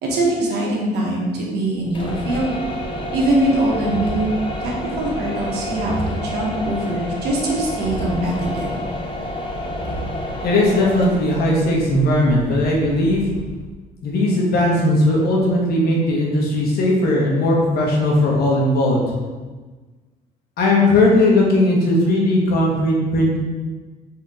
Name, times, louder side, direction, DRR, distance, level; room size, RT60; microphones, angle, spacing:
voice 1, 0.0-2.6 3.1-4.3 4.6-8.7, right 1 dB, 75° right, -2 dB, 1.1 m, -22 dB
sound 1, 1.8-13.7, left 1 dB, 30° left, 0.6 m, -29 dB
voice 2, 10.4-13.3 14.0-19.0 20.6-23.4, left 1 dB, 65° left, -2 dB, 1.1 m, -17 dB
4.3 x 2.8 x 3.7 m, 1.3 s
cardioid pair, 110°, 17 cm